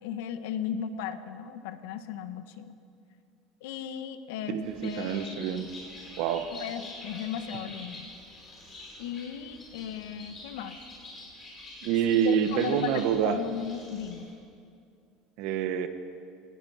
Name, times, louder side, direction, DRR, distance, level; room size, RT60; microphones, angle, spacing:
voice 1, 0.0-2.8 3.6-5.6 6.5-8.1 9.0-10.8 12.2-14.3, left 8 dB, 80° left, 9 dB, 1.4 m, -36 dB
voice 2, 4.5-5.7 6.2-6.5 11.8-13.4 15.4-15.9, right 8 dB, 55° right, 8 dB, 1.4 m, -27 dB
Bird, 4.6-14.3, left 2 dB, 20° left, 5.8 m, -46 dB
25.5 x 19.0 x 5.8 m, 2.4 s
cardioid pair, 180°, 0 cm